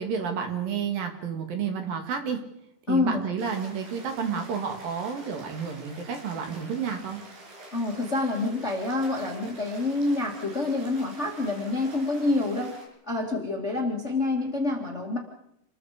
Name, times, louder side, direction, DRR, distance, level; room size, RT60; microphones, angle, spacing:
voice 1, 0.0-2.4 2.9-7.2, right 6 dB, 65° right, 5 dB, 3.9 m, -30 dB
voice 2, 2.9-3.2 7.7-12.7 13.1-15.2, left 2 dB, 25° left, 1 dB, 1.7 m, -27 dB
sound 1, 3.4-12.9, right 2 dB, 85° right, 7.5 m, -47 dB
28.5 x 21.0 x 5.1 m, 0.78 s
omnidirectional pair, 4.6 m